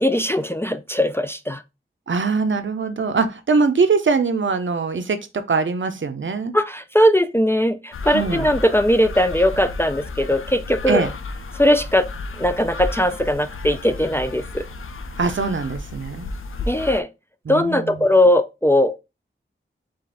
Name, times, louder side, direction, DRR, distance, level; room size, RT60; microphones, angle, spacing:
voice 1, 0.0-1.6 6.5-11.1 11.5-12.1 12.4-14.7 16.7-17.1 17.5-18.9, left 1 dB, 10° left, 0.3 m, -19 dB
voice 2, 2.1-6.5 8.1-8.5 10.9-11.1 15.2-16.3 17.5-18.1, right 4 dB, 65° right, 0.6 m, -22 dB
sound 1, 7.9-17.0, left 3 dB, 85° left, 0.5 m, -33 dB
5.0 x 2.5 x 3.8 m
wide cardioid pair, 85°, 21 cm